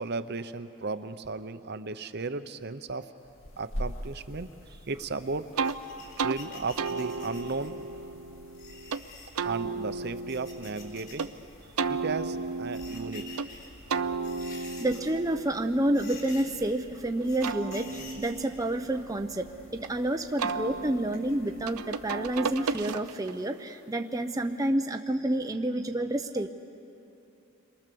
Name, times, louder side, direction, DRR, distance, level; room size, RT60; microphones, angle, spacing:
voice 1, 0.0-3.1 3.6-5.5 6.2-7.9 9.4-11.3 11.9-13.3, right 3 dB, 45° right, 11 dB, 0.7 m, -35 dB
sound 1, 3.2-22.8, equal, 60° left, 2.0 m, -47 dB
sound 2, 5.6-7.8 8.5-9.3 10.1-11.3 11.6-11.7 12.5-13.7 14.1-15.2 15.5-15.7 15.9-16.7 17.2-18.5 19.5-20.3 21.1-21.7 22.1-22.2 22.5-22.6, left 4 dB, 40° left, 4.9 m, -48 dB
sound 3, 5.6-5.8 6.2-6.4 6.8-9.0 9.4-11.3 11.8-13.5 13.9-16.8 17.2-19.9 20.4-23.4, right 5 dB, 85° right, 0.7 m, -34 dB
voice 2, 14.5-19.5 19.7-26.5, right 1 dB, 15° right, 5 dB, 0.6 m, -29 dB
29.5 x 23.0 x 7.0 m, 2.9 s
head